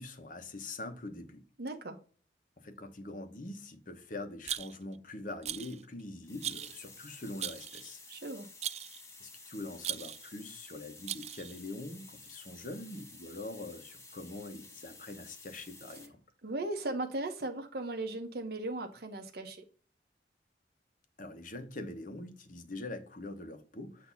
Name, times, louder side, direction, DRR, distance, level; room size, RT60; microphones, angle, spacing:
voice 1, 0.0-1.4 2.6-8.0 9.2-16.2 21.2-24.1, left 2 dB, 50° left, 1.1 m, -44 dB
voice 2, 1.6-2.0 8.1-8.5 16.4-19.6, right 2 dB, 60° right, 1.0 m, -37 dB
Rattle, 4.4-5.0 5.4-5.8 6.4-6.8 7.4-7.9 8.6-9.0 9.8-10.3 11.1-11.6, right 11 dB, 40° right, 0.3 m, -38 dB
sound 1, 6.2-16.1, left 3 dB, 15° left, 1.1 m, -53 dB
8.3 x 2.9 x 5.6 m
head